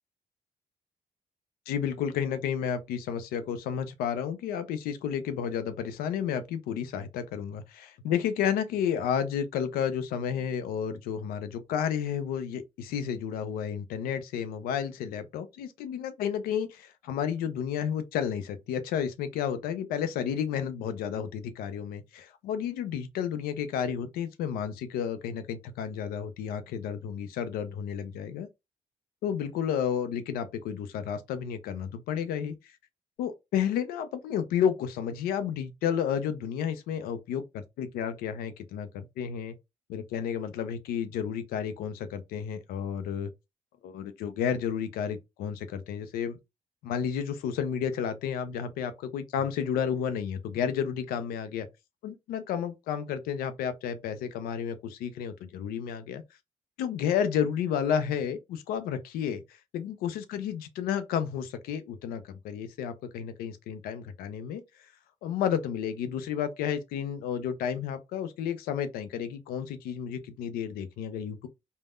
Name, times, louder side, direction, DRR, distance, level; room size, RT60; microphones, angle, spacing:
voice 1, 1.7-28.5 29.2-32.5 33.2-39.5 39.9-43.3 43.8-46.4 46.8-51.7 52.0-56.2 56.8-64.6 65.2-71.5, left 8 dB, 90° left, 0.4 m, -31 dB
3.4 x 2.1 x 2.3 m
supercardioid pair, 65°, 15 cm